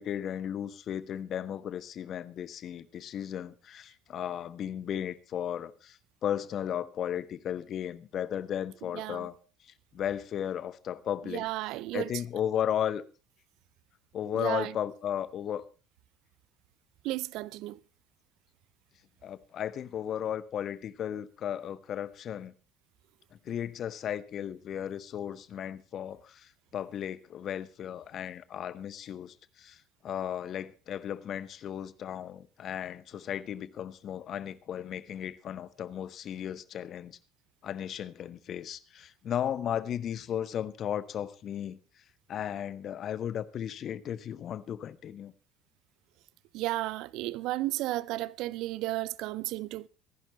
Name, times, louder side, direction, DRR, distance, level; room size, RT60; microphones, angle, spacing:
voice 1, 0.0-9.4 9.6-11.4 11.9-13.0 14.1-15.6 19.2-22.5 23.3-37.2 37.6-41.8 42.3-45.3, left 9 dB, 45° left, 1.2 m, -35 dB
voice 2, 8.9-9.3 11.2-12.2 14.3-14.8 17.0-17.8 46.5-49.9, right 17 dB, 60° right, 0.6 m, -33 dB
25.0 x 11.0 x 3.1 m
figure-of-eight pair, 60°, 0 cm